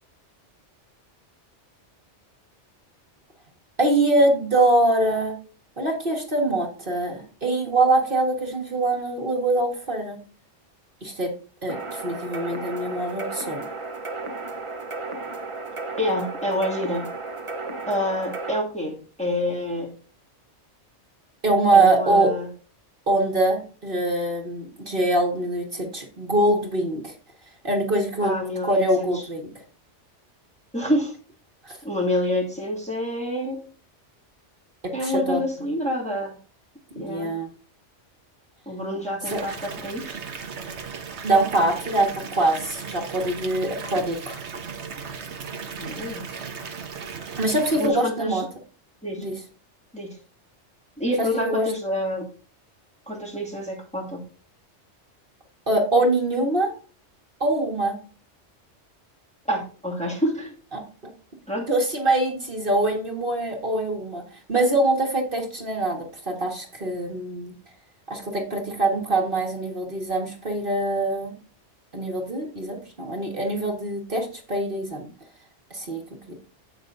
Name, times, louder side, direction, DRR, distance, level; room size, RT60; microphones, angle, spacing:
voice 1, 3.8-5.3 5.8-10.2 11.0-11.3 11.6-13.6 21.4-22.3 23.1-27.1 27.6-28.3 28.6-29.4 31.6-31.8 34.8-35.4 37.0-37.5 39.3-39.4 41.2-44.4 47.4-48.4 49.2-49.4 51.2-51.7 55.7-56.7 57.4-58.0 60.7-60.8 61.7-64.2 64.5-67.5 68.1-71.3 71.9-75.1 75.7-76.0 76.3-76.4, right 2 dB, 45° right, 1 dB, 1.9 m, -23 dB
sound 1, 11.7-18.6, right 3 dB, 30° right, 1.0 m, -34 dB
voice 2, 16.0-17.1 17.9-19.9 21.7-22.5 28.2-29.2 30.7-31.2 31.8-33.6 34.9-36.3 37.0-37.3 38.7-40.2 45.8-46.3 47.8-48.5 49.0-49.2 49.9-50.1 51.0-52.3 53.1-54.2 59.5-60.5 61.5-61.7, left 1 dB, 5° left, -3 dB, 2.3 m, -27 dB
Water tap faucet / Bathtub (filling or washing) / Fill (with liquid), 39.2-47.9, right 5 dB, 70° right, 1.4 m, -36 dB
16.5 x 6.1 x 2.7 m, 0.39 s
omnidirectional pair, 1.2 m